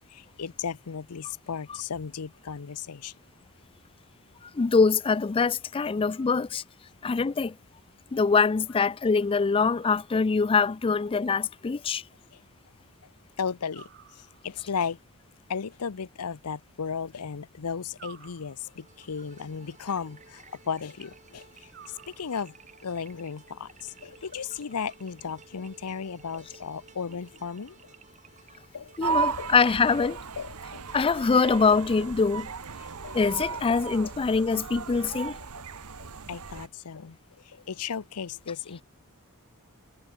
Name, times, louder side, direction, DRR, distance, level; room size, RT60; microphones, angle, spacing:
voice 1, 0.1-3.1 12.3-12.4 13.4-15.0 15.5-22.6 22.8-27.9 28.7-29.5 30.0-30.9 33.0-33.2 33.5-34.1 34.4-34.5 36.3-38.8, left 6 dB, 85° left, 0.7 m, -35 dB
voice 2, 4.4-6.6 7.0-7.6 8.1-12.0 29.0-30.2 30.9-32.5 33.1-35.4, left 4 dB, 25° left, 0.3 m, -24 dB
sound 1, 9.8-10.6 13.7-14.7 18.0-19.0 21.7-22.7, right 9 dB, 50° right, 1.0 m, -53 dB
sound 2, 18.6-33.7, right 4 dB, 35° right, 2.3 m, -55 dB
sound 3, 29.0-36.7, right 6 dB, 85° right, 1.2 m, -35 dB
head